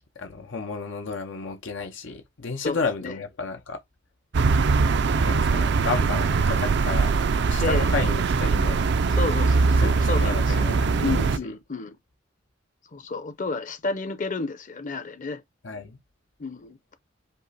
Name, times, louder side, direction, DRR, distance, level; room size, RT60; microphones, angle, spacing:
voice 1, 0.2-3.8 4.9-7.1 7.5-8.8 9.8-11.5 15.6-16.0, left 4 dB, 85° left, 0.8 m, -32 dB
voice 2, 2.6-3.1 7.6-7.9 9.1-10.7 11.0-12.0 12.9-15.4 16.4-16.8, left 3 dB, 45° left, 0.7 m, -31 dB
sound 1, 4.3-11.4, right 4 dB, 65° right, 0.4 m, -21 dB
5.4 x 2.1 x 4.1 m
head